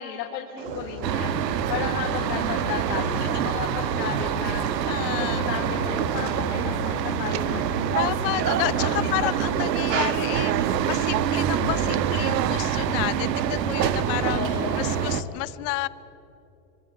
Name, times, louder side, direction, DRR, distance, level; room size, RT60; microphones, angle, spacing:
voice 1, 0.0-1.4 1.7-8.0 9.0-9.4 14.2-15.1, left 8 dB, 85° left, 0 dB, 3.1 m, -34 dB
sound 1, 0.6-9.2, left 9 dB, 65° left, 1.8 m, -39 dB
sound 2, 0.6-12.5, right 13 dB, 45° right, 0.7 m, -36 dB
sound 3, 1.0-15.2, right 9 dB, 90° right, 1.4 m, -26 dB
voice 2, 2.3-2.7 3.2-3.4 4.9-5.4 8.0-15.9, left 19 dB, 30° left, 18 dB, 0.5 m, -31 dB
25.0 x 25.0 x 5.3 m, 2.9 s
supercardioid pair, 150°, 48 cm